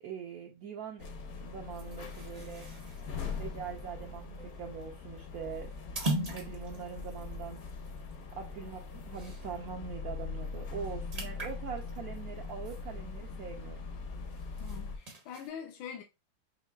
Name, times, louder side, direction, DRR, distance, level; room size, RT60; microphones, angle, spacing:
voice 1, 0.0-1.1 1.4-2.7 3.4-5.7 6.2-7.6 8.4-13.8, right 7 dB, 80° right, 0.8 m, -42 dB
sound 1, 1.0-15.0, left 4 dB, 60° left, 1.0 m, -42 dB
sound 2, 1.7-9.7 10.1-10.3 10.5-13.5 13.9-15.5, right 1 dB, 50° right, 0.4 m, -42 dB
voice 2, 14.6-16.0, left 8 dB, 80° left, 1.4 m, -43 dB
5.5 x 3.0 x 2.3 m
omnidirectional pair, 2.2 m